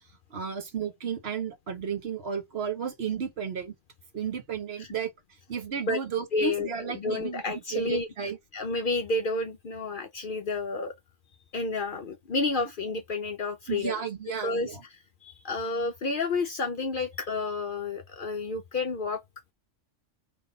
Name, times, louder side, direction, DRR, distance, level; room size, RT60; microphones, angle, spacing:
voice 1, 0.3-3.7 4.1-5.1 5.5-8.4 13.7-14.8, right 7 dB, 60° right, 1.1 m, -33 dB
voice 2, 6.3-10.9 11.5-14.0 14.4-14.8 15.2-19.2, left 3 dB, 55° left, 0.7 m, -30 dB
3.9 x 3.0 x 3.8 m
omnidirectional pair, 1.3 m